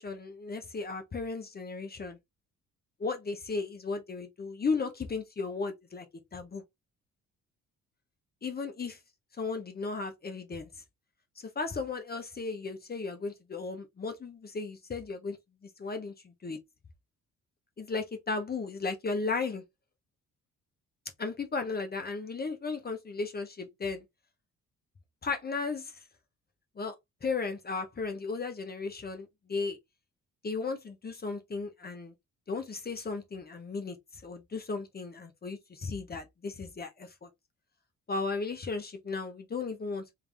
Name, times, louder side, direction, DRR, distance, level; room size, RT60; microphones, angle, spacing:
voice 1, 0.0-2.2 3.0-6.1 6.3-6.6 8.4-9.0 9.3-10.7 11.4-15.4 15.8-16.6 17.8-19.6 21.2-24.0 25.2-26.0 26.8-26.9 27.2-29.8 30.4-32.1 32.5-37.3 38.1-40.0, left 4 dB, 30° left, 1.0 m, -35 dB
3.4 x 3.3 x 3.4 m
cardioid pair, 90°, 30 cm